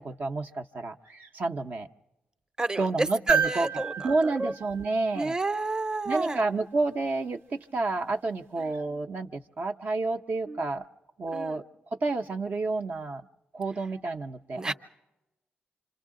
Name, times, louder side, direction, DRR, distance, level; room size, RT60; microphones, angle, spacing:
voice 1, 0.0-1.9 2.8-5.3 6.1-10.9 11.2-11.6 12.0-13.2 13.5-14.7, right 3 dB, 55° right, 4 dB, 0.6 m, -30 dB
voice 2, 2.6-4.5 5.1-6.4 8.6-8.7 10.5-10.6 11.3-11.6 14.5-14.7, right 2 dB, 20° right, 10 dB, 0.7 m, -30 dB
sound 1, 3.3-5.6 7.6-7.7, right 7 dB, 85° right, 1.0 m, -31 dB
28.0 x 25.5 x 3.7 m, 1.0 s
cardioid pair, 95°, 4 cm